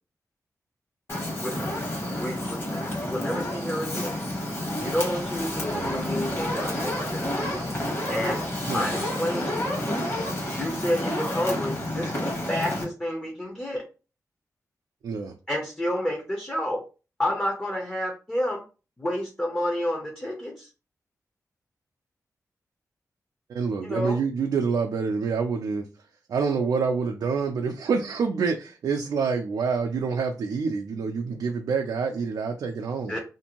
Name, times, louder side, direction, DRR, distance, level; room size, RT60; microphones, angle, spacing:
Fire, 1.1-12.8, left 1 dB, 40° left, 1.2 m, -30 dB
voice 1, 2.2-4.2 4.8-7.3 8.1-8.4 8.7-9.8 10.5-13.8 15.5-16.8 17.2-18.6 19.0-20.7 23.8-24.2 33.1-33.2, left 1 dB, 15° left, 0 dB, 0.6 m, -30 dB
voice 2, 5.7-6.1 8.7-8.9 15.0-15.3 23.5-25.9 26.3-33.2, right 5 dB, 75° right, 3 dB, 0.3 m, -27 dB
2.6 x 2.5 x 2.9 m, 0.33 s
wide cardioid pair, 150°, 6 cm